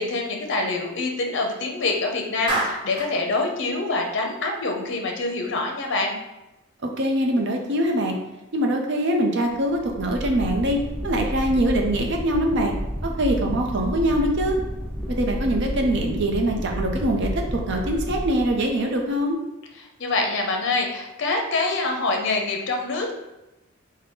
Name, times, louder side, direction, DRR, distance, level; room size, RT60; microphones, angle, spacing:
voice 1, 0.0-6.2 20.0-23.1, left 3 dB, 60° left, 2 dB, 0.6 m, -25 dB
Clapping, 2.5-3.2, right 1 dB, 25° right, 1.0 m, -26 dB
voice 2, 7.0-8.2 8.5-10.8 11.0-12.7 13.0-14.6 15.2-19.4, right 1 dB, 55° right, 2 dB, 0.6 m, -23 dB
sound 1, 9.5-19.0, equal, 5° right, 0.3 m, -31 dB
3.7 x 2.1 x 3.6 m, 0.98 s
head